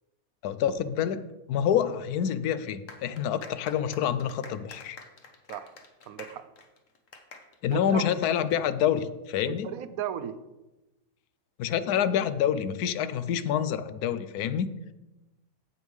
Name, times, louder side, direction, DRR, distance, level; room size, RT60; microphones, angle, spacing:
voice 1, 0.4-1.2 1.5-5.0 7.6-9.7 11.6-14.7, left 9 dB, 85° left, 13 dB, 1.1 m, -27 dB
sound 1, 2.9-8.8, left 4 dB, 60° left, 1.3 m, -49 dB
voice 2, 6.1-6.4 7.7-8.1 9.5-10.4, right 9 dB, 75° right, 12 dB, 1.0 m, -35 dB
15.0 x 5.3 x 3.2 m, 1.0 s
omnidirectional pair, 1.6 m